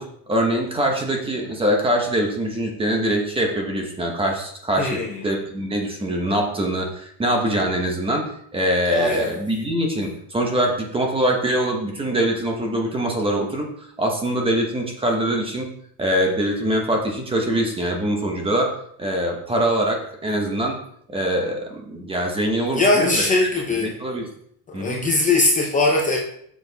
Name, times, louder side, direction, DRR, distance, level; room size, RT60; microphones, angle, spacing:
voice 1, 0.0-13.7 14.0-15.7 16.0-18.7 19.0-20.8 21.1-23.2 23.8-24.3 24.7-25.0, right 1 dB, 15° right, 1 dB, 1.2 m, -23 dB
voice 2, 4.8-5.3 8.9-9.3 22.7-24.0 24.7-26.2, left 2 dB, 20° left, -1 dB, 0.8 m, -20 dB
7.1 x 6.6 x 4.1 m, 0.68 s
cardioid pair, 175°, 42 cm